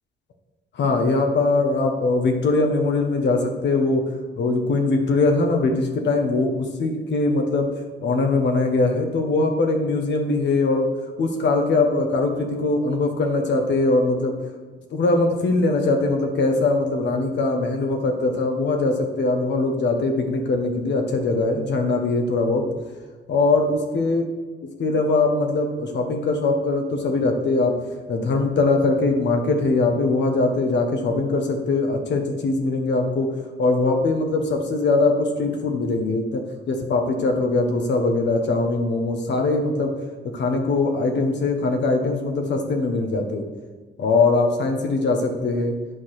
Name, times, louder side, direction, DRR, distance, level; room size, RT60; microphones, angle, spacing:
voice 1, 0.7-4.0 4.4-7.7 8.0-10.9 11.2-14.3 14.9-22.6 23.3-24.2 24.8-27.8 28.1-33.3 33.6-36.4 36.7-39.9 40.3-43.4 44.0-45.7, left 3 dB, 60° left, 3 dB, 1.2 m, -21 dB
9.4 x 4.0 x 6.4 m, 1.3 s
cardioid pair, 90°, 20 cm